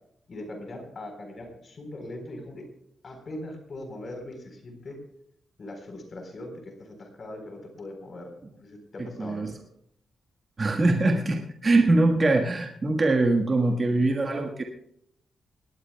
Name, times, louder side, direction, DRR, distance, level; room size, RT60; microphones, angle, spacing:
voice 1, 0.3-2.7 3.0-5.0 5.6-9.5, left 1 dB, 35° left, 4 dB, 4.1 m, -40 dB
voice 2, 9.2-9.5 10.6-14.6, right 2 dB, 25° right, 2 dB, 1.5 m, -23 dB
19.5 x 18.5 x 2.3 m, 0.72 s
wide cardioid pair, 165°, 0 cm